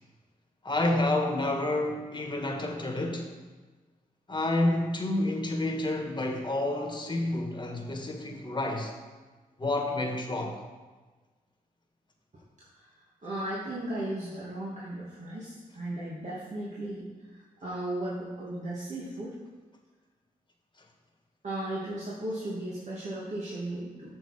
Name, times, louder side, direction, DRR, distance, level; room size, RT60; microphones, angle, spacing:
voice 1, 0.6-3.3 4.3-8.9 9.6-10.6, left 2 dB, 30° left, 3 dB, 1.6 m, -29 dB
voice 2, 12.7-19.4 21.4-24.2, right 1 dB, 50° right, -7 dB, 2.0 m, -36 dB
6.6 x 6.4 x 4.8 m, 1.3 s
supercardioid pair, 50°, 16 cm